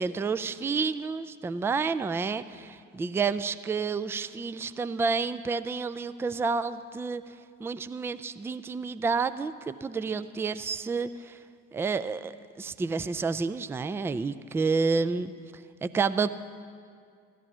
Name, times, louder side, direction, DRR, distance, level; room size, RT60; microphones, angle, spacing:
voice 1, 0.0-7.2 7.6-11.4 11.7-15.3 15.8-16.3, right 4 dB, 5° right, 12 dB, 0.3 m, -29 dB
14.5 x 11.5 x 6.2 m, 2.2 s
figure-of-eight pair, 60°, 39 cm